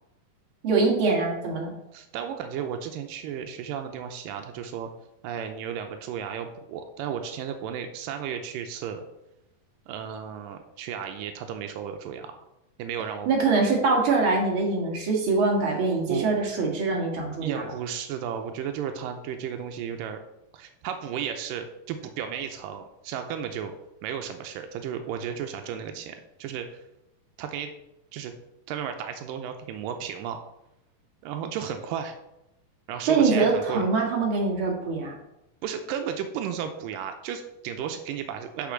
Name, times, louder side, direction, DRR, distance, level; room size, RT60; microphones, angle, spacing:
voice 1, 0.6-1.7 13.3-17.6 33.1-35.1, right 4 dB, 45° right, -1 dB, 2.3 m, -23 dB
voice 2, 1.9-4.9 5.2-9.0 9.9-12.3 12.8-13.3 16.1-16.3 17.4-20.2 20.5-23.7 24.0-26.8 27.4-27.7 28.1-28.3 28.7-30.4 31.2-32.2 32.9-33.9 35.6-38.7, right 8 dB, 85° right, 6 dB, 2.3 m, -34 dB
6.8 x 5.8 x 6.3 m, 0.90 s
omnidirectional pair, 3.9 m